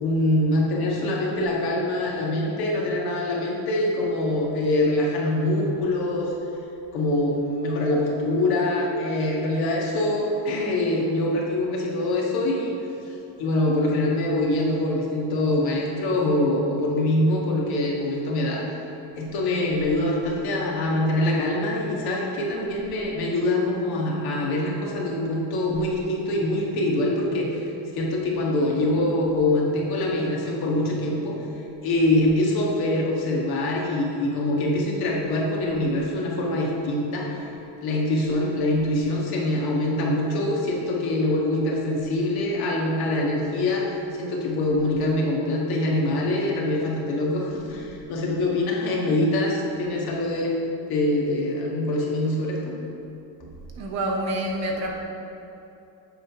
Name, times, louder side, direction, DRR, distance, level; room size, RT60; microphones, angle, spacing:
voice 1, 0.0-6.3 6.9-12.7 13.4-18.6 19.1-27.7 27.9-31.4 31.8-37.5 37.8-52.7, left 1 dB, 55° left, -2 dB, 1.5 m, -24 dB
voice 2, 53.7-55.0, right 1 dB, 35° right, 0 dB, 1.0 m, -27 dB
8.3 x 3.8 x 5.6 m, 2.9 s
cardioid pair, 160°, 44 cm